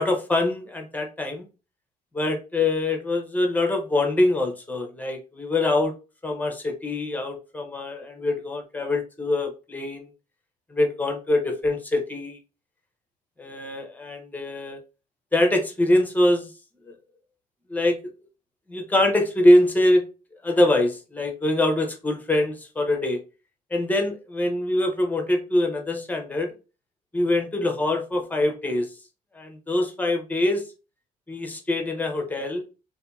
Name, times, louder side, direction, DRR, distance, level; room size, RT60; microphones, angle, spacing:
voice 1, 0.0-1.5 2.1-6.0 6.2-10.1 10.7-12.4 13.4-14.8 15.3-16.5 16.9-17.0 17.7-18.0 18.7-20.0 20.4-23.2 23.7-26.5 27.1-28.9 29.3-30.7 31.3-32.6, left 1 dB, 10° left, 3 dB, 0.7 m, -24 dB
2.7 x 2.6 x 2.3 m, 0.32 s
cardioid pair, 110°, 17 cm